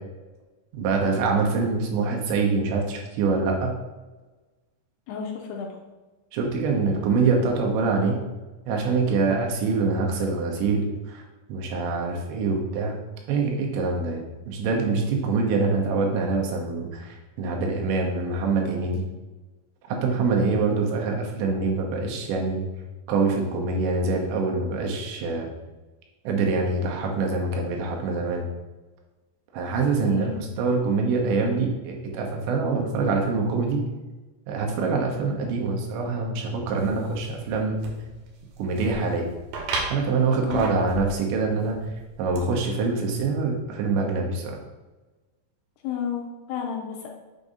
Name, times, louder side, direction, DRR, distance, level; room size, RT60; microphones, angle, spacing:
voice 1, 0.7-3.7 6.3-8.2 8.7-11.2 11.5-13.0 13.3-19.1 19.9-22.6 23.1-25.5 26.2-28.5 29.5-33.8 34.5-37.9 38.6-39.3 39.9-41.8 42.2-44.6, right 4 dB, 90° right, 1 dB, 3.2 m, -25 dB
voice 2, 5.1-5.8 30.0-30.4 40.4-40.6 45.8-47.1, left 7 dB, 80° left, 0 dB, 2.5 m, -32 dB
sound 1, 36.8-42.4, right 3 dB, 75° right, 2.3 m, -37 dB
7.2 x 2.7 x 4.9 m, 1.2 s
omnidirectional pair, 5.0 m